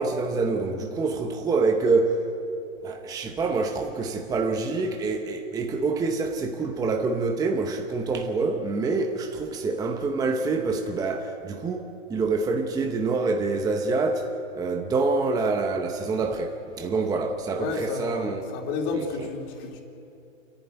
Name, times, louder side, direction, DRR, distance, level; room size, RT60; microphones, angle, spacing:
voice 1, 0.0-2.2 2.8-18.4 18.9-19.3, right 3 dB, 10° right, 0.9 m, -26 dB
voice 2, 17.6-19.8, left 4 dB, 35° left, 3.3 m, -31 dB
28.5 x 11.5 x 9.1 m
hypercardioid pair, 140°, 39 cm